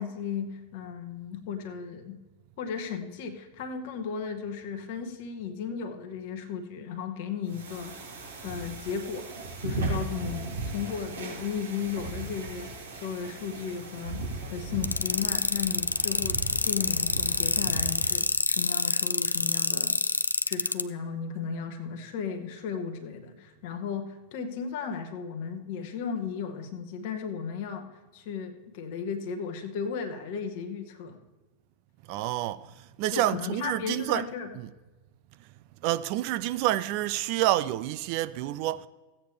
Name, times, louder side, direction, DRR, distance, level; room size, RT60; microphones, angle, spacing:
voice 1, 0.0-2.2 2.6-7.9 8.4-9.3 9.6-14.2 14.5-20.0 20.5-27.9 28.1-31.2 33.1-34.5, left 6 dB, 50° left, 1.1 m, -35 dB
sound 1, 7.5-18.2, right 2 dB, 70° right, 2.4 m, -37 dB
sound 2, 14.8-20.8, left 3 dB, 80° left, 0.4 m, -26 dB
voice 2, 32.1-34.3 34.5-34.7 35.8-38.9, right 14 dB, 45° right, 0.4 m, -28 dB
15.5 x 8.6 x 3.3 m
figure-of-eight pair, 90°, 0 cm